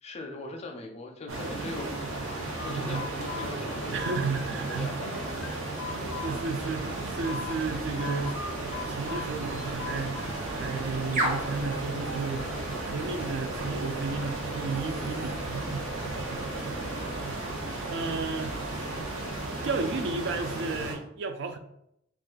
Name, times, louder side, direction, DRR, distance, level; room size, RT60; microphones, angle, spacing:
voice 1, 0.0-5.6 5.9-6.1 16.5-17.6, left 2 dB, 35° left, 3 dB, 0.4 m, -42 dB
sound 1, 1.3-21.0, right 2 dB, 85° right, 0.8 m, -35 dB
sound 2, 2.2-4.7 5.0-7.6 8.0-10.6 10.9-13.5, left 5 dB, 90° left, 0.4 m, -41 dB
voice 2, 2.6-3.1 3.9-5.0 6.2-8.4 8.9-10.1 10.5-12.5 12.9-15.9 16.5-16.7 17.3-17.4 17.9-19.0 19.5-21.6, right 4 dB, 65° right, 7 dB, 0.3 m, -33 dB
sound 3, 6.2-19.6, right 1 dB, 40° right, 0.8 m, -39 dB
2.4 x 2.4 x 3.7 m, 0.76 s
head